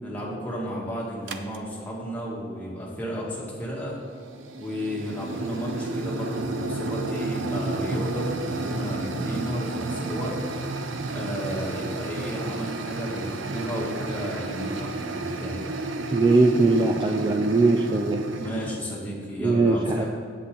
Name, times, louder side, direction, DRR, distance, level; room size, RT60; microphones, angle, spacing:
voice 1, 0.0-4.0 4.6-10.4 11.1-15.6 18.3-20.1, equal, 10° left, -6 dB, 1.9 m, -33 dB
sound 1, 1.3-1.6 3.9-18.8, right 2 dB, 75° right, 0.6 m, -31 dB
voice 2, 16.1-18.2 19.4-20.0, right 3 dB, 25° right, 3 dB, 0.3 m, -21 dB
8.3 x 8.2 x 3.8 m, 2.3 s
head